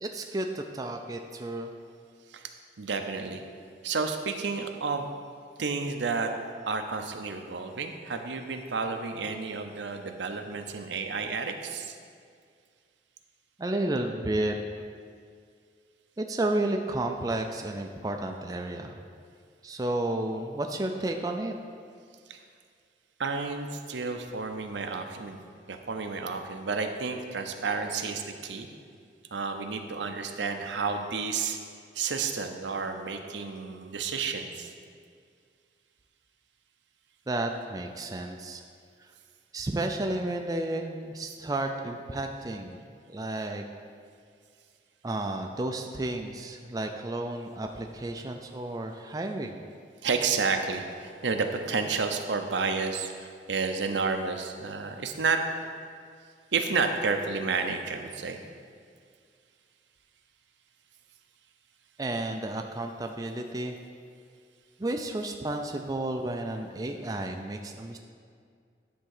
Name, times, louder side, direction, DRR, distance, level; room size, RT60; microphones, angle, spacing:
voice 1, 0.0-1.7 13.6-14.5 16.2-19.0 19.6-21.5 37.3-38.6 39.0-39.1 39.5-42.8 43.1-43.6 45.0-49.6 62.0-63.8 64.8-68.0, right 1 dB, 20° right, 4 dB, 0.4 m, -32 dB
voice 2, 2.8-3.4 3.8-5.1 5.6-6.3 6.7-12.0 22.3-22.4 23.2-25.4 25.7-28.7 29.3-31.6 31.9-34.7 50.0-55.4 56.5-58.4, right 4 dB, 75° right, 5 dB, 0.7 m, -31 dB
10.5 x 3.6 x 6.5 m, 2.2 s
head